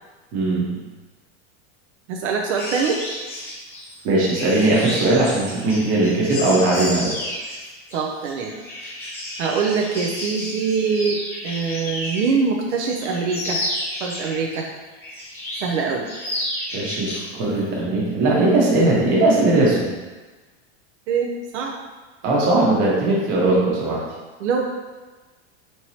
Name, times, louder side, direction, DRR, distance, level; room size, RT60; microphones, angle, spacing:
voice 1, 0.3-0.8 4.0-7.1 16.7-19.9 22.2-24.0, right 2 dB, 35° right, -5 dB, 1.1 m, -19 dB
voice 2, 2.1-3.0 7.9-8.5 9.4-13.6 14.0-14.7 15.6-16.1 21.1-21.7 24.4-24.6, right 5 dB, 80° right, 0 dB, 0.6 m, -23 dB
sound 1, 2.5-12.4 12.7-14.6 15.0-15.7 16.0-17.3 17.6-17.8, left 1 dB, 5° left, 0.3 m, -31 dB
4.5 x 3.0 x 2.8 m, 1.3 s
supercardioid pair, 165°, 34 cm